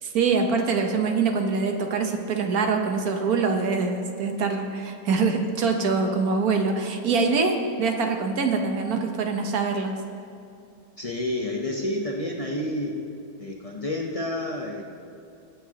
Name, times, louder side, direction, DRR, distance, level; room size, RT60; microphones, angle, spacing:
voice 1, 0.0-9.9, right 4 dB, 80° right, 4 dB, 1.5 m, -24 dB
voice 2, 11.0-13.0 13.4-14.8, left 1 dB, 30° left, -1 dB, 0.8 m, -29 dB
21.5 x 8.7 x 2.9 m, 2.6 s
omnidirectional pair, 1.5 m